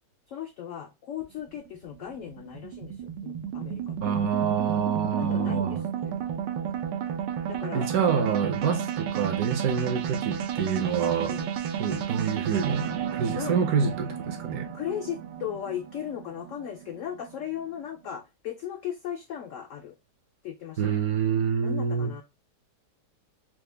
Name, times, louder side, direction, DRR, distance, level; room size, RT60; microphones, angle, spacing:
voice 1, 0.3-4.2 5.2-6.1 7.5-7.9 11.2-11.5 13.3-13.6 14.7-19.9 20.4-21.0 21.6-22.2, left 9 dB, 80° left, 0.7 m, -37 dB
sound 1, 1.2-17.6, right 8 dB, 90° right, 1.3 m, -33 dB
voice 2, 4.0-5.8 7.7-11.4 11.8-14.7 20.8-22.1, right 6 dB, 65° right, 1.0 m, -27 dB
4.7 x 2.1 x 3.2 m
omnidirectional pair, 1.8 m